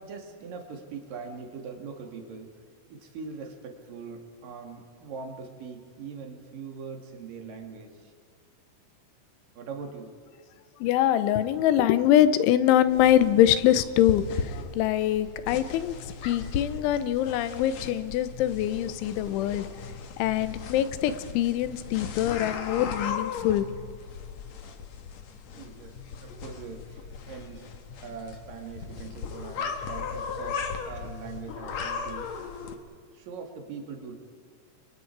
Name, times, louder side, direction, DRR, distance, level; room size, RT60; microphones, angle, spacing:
voice 1, 0.0-2.5 2.9-8.1 9.6-10.1 25.5-27.7 28.0-32.5 33.1-34.1, right 5 dB, 55° right, 3 dB, 3.6 m, -41 dB
voice 2, 10.8-15.9 16.2-19.7 20.2-23.7, left 11 dB, 85° left, 13 dB, 3.3 m, -24 dB
sound 1, 12.9-32.8, left 5 dB, 65° left, 1.7 m, -37 dB
29.5 x 23.0 x 4.8 m, 2.1 s
omnidirectional pair, 5.3 m